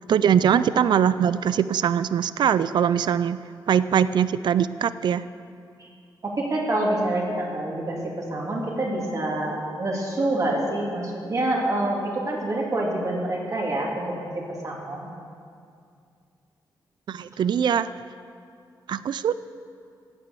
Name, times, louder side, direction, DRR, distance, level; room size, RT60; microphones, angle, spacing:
voice 1, 0.1-3.4 3.7-5.2 17.1-17.9 18.9-19.3, right 8 dB, 65° right, 15 dB, 0.4 m, -22 dB
voice 2, 6.2-14.3 14.6-15.1, right 1 dB, 40° right, -2 dB, 3.0 m, -27 dB
15.0 x 9.6 x 6.9 m, 2.4 s
cardioid pair, 110°, 8 cm